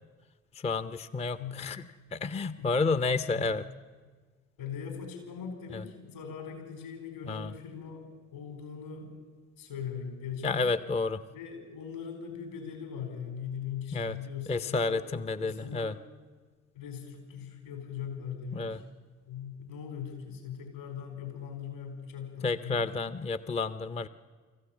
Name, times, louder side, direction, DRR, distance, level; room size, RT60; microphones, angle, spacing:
voice 1, 0.6-1.8 2.1-3.6 5.7-5.8 7.2-7.5 10.4-11.2 13.9-14.2 14.5-16.0 18.5-18.8 22.4-24.1, left 3 dB, 15° left, 14 dB, 0.6 m, -30 dB
voice 2, 1.2-1.6 2.6-2.8 3.3-3.6 4.6-8.0 8.3-9.1 9.6-10.7 11.3-15.1 15.3-16.0 16.7-18.8 19.3-22.9, left 7 dB, 70° left, 4 dB, 4.7 m, -40 dB
24.5 x 14.5 x 7.3 m, 1.5 s
figure-of-eight pair, 50°, 42 cm